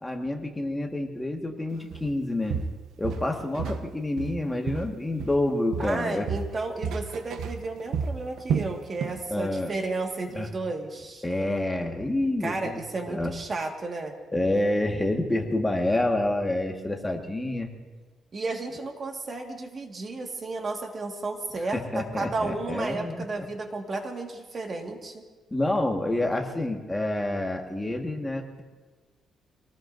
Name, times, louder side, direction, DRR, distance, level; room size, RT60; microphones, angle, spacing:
voice 1, 0.0-2.6 3.0-6.3 9.3-9.7 10.3-10.5 11.2-12.8 13.1-13.3 14.3-17.7 21.7-23.4 25.5-28.6, left 1 dB, 10° left, 2 dB, 1.5 m, -28 dB
Walk footsteps, 1.9-2.1 2.5-3.9 4.2-5.5 5.7-9.3 9.6-9.8 10.3-10.4, right 6 dB, 80° right, 0.9 m, -32 dB
voice 2, 5.8-11.2 12.4-14.1 18.3-25.2, right 3 dB, 35° right, 3 dB, 1.7 m, -33 dB
25.5 x 19.0 x 2.6 m, 1.3 s
cardioid pair, 125°, 0 cm